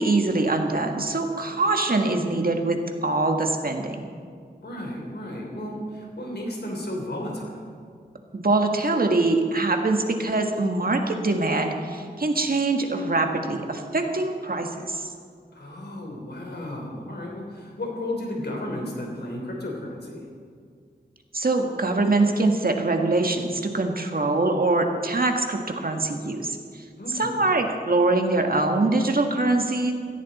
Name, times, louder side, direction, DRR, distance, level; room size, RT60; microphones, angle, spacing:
voice 1, 0.0-4.1 8.3-15.1 21.3-26.6 27.2-29.9, right 2 dB, 55° right, 4 dB, 1.6 m, -23 dB
voice 2, 4.6-7.7 15.5-20.2 27.0-27.5, left 1 dB, 75° left, 0 dB, 3.5 m, -33 dB
17.0 x 15.0 x 4.2 m, 2.1 s
wide cardioid pair, 60°, 17 cm